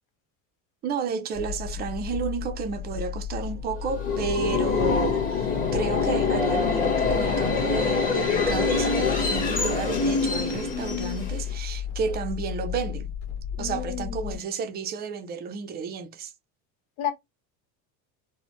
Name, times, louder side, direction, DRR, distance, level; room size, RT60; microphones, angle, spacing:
voice 1, 0.8-13.1 13.6-16.3, right 5 dB, 25° right, 0.4 m, -32 dB
sound 1, 1.3-14.4, left 9 dB, 60° left, 1.4 m, -34 dB
Subway metro underground, 3.8-11.5, left 4 dB, 20° left, 1.1 m, -25 dB
voice 2, 4.3-4.6 13.6-14.4 17.0-17.1, left 9 dB, 90° left, 0.9 m, -33 dB
4.0 x 2.0 x 2.9 m
cardioid pair, 160°, 40 cm